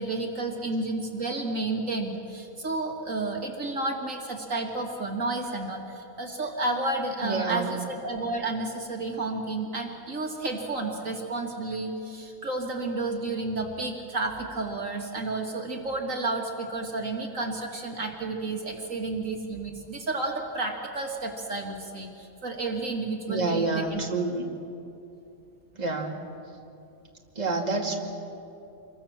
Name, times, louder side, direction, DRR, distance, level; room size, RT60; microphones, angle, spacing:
voice 1, 0.0-24.0, right 2 dB, 60° right, 1 dB, 2.4 m, -31 dB
voice 2, 7.2-7.8 23.3-24.5 25.8-26.3 27.4-28.0, right 3 dB, 30° right, 0 dB, 2.4 m, -28 dB
27.0 x 23.0 x 7.2 m, 2.7 s
omnidirectional pair, 1.6 m